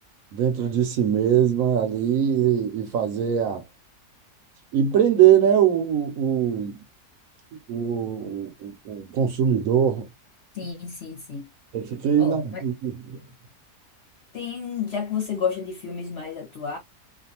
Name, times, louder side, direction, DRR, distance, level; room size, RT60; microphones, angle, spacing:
voice 1, 0.3-3.6 4.7-6.8 7.5-10.1 11.7-13.2, right 9 dB, 70° right, 0.9 m, -22 dB
voice 2, 10.5-11.5 12.2-12.6 14.3-16.8, left 6 dB, 55° left, 0.8 m, -31 dB
2.6 x 2.3 x 2.7 m
omnidirectional pair, 1.7 m